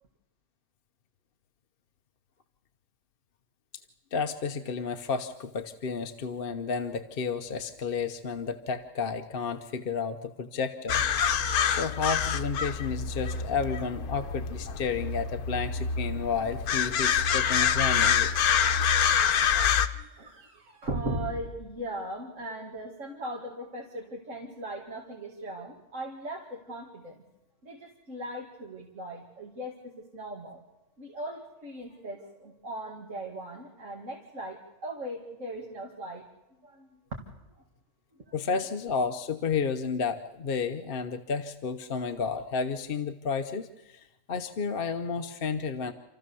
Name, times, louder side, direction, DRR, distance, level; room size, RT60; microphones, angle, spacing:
voice 1, 4.1-11.0 11.7-18.4 38.3-45.9, left 5 dB, 45° left, 7 dB, 0.9 m, -32 dB
sound 1, 10.9-19.9, left 7 dB, 85° left, 1.4 m, -26 dB
voice 2, 19.7-27.2 27.6-30.6 31.0-36.2 36.6-37.0 38.3-38.4, right 1 dB, 60° right, 0 dB, 2.3 m, -38 dB
28.0 x 14.0 x 6.9 m, 0.96 s
omnidirectional pair, 1.5 m